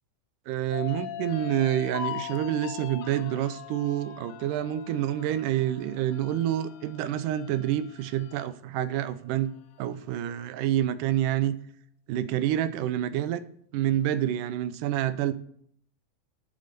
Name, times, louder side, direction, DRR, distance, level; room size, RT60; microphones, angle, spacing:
voice 1, 0.5-11.6 12.1-13.4 13.7-15.3, right 11 dB, 85° right, 13 dB, 2.3 m, -28 dB
sound 1, 0.7-7.8, left 13 dB, 40° left, 0.7 m, -43 dB
sound 2, 0.9-8.5 9.0-9.1 9.5-10.1, left 9 dB, 80° left, 2.1 m, -44 dB
8.9 x 7.7 x 6.7 m, 0.63 s
omnidirectional pair, 3.6 m